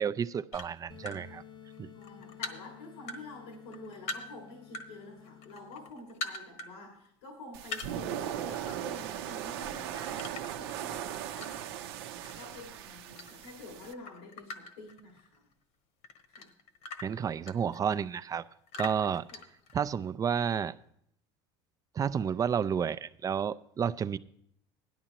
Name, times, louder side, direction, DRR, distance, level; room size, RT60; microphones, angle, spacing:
voice 1, 0.0-1.4 1.8-1.9 17.0-18.4 18.8-19.3 19.7-20.7 22.0-24.2, right 7 dB, 25° right, 0.4 m, -31 dB
sound 1, 0.5-1.2 1.7-3.2 3.5-4.9 5.2-6.7 7.1-7.2 7.6-8.6 9.0-9.2 10.2-11.8 12.3-13.6 13.9-15.5 16.0-18.1 18.7-20.0, left 3 dB, 60° left, 1.2 m, -42 dB
sound 2, 0.9-5.9, left 9 dB, 35° left, 0.7 m, -53 dB
voice 2, 1.9-11.9 12.3-15.5 16.3-16.5 19.3-19.4, left 2 dB, 90° left, 2.0 m, -48 dB
sound 3, 7.5-13.9, right 10 dB, 85° right, 0.7 m, -38 dB
16.5 x 11.0 x 2.9 m
supercardioid pair, 100°, 13 cm